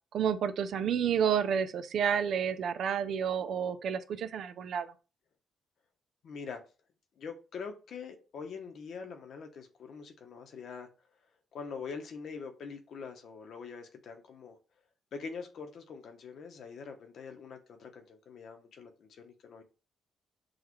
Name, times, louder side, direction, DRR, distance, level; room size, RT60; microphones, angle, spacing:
voice 1, 0.1-4.9, right 8 dB, 70° right, 0.4 m, -30 dB
voice 2, 6.2-6.6 7.2-10.9 11.5-14.6 15.1-19.6, left 5 dB, 70° left, 0.9 m, -44 dB
6.3 x 2.4 x 3.1 m
cardioid pair, 95°, 0 cm